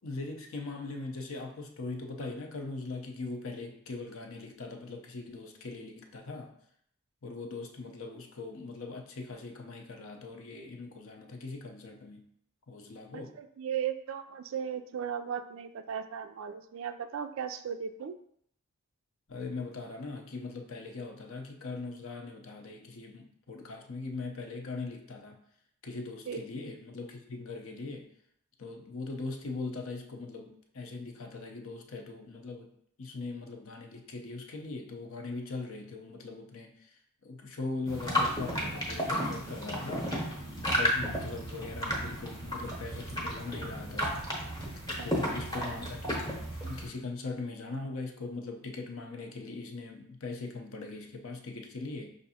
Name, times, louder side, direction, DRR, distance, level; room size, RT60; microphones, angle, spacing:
voice 1, 0.0-6.5 7.2-12.2 12.7-13.4 19.3-25.4 25.8-28.1 28.6-32.7 33.0-36.9 37.2-40.2 40.6-44.5 45.0-52.1, left 3 dB, 65° left, 4 dB, 0.6 m, -40 dB
voice 2, 13.1-18.2 26.3-26.4 45.0-45.3, right 8 dB, 60° right, 10 dB, 0.3 m, -37 dB
sound 1, 37.9-46.9, equal, 15° left, 0.8 m, -33 dB
5.6 x 2.6 x 2.7 m, 0.69 s
head